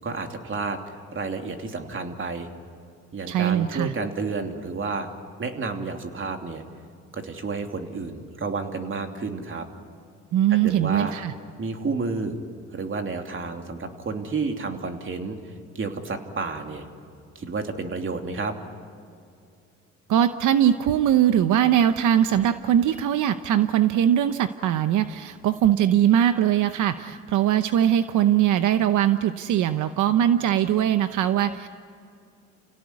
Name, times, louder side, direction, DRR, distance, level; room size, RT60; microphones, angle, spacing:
voice 1, 0.0-2.5 3.1-5.1 5.4-6.6 7.1-9.6 10.5-11.1 11.6-12.4 12.7-16.8 17.3-18.5, right 4 dB, 40° right, 4 dB, 2.9 m, -31 dB
voice 2, 3.3-3.9 10.3-11.3 20.1-31.7, right 10 dB, 80° right, 10 dB, 0.9 m, -21 dB
30.0 x 17.5 x 9.6 m, 2.4 s
cardioid pair, 90°, 30 cm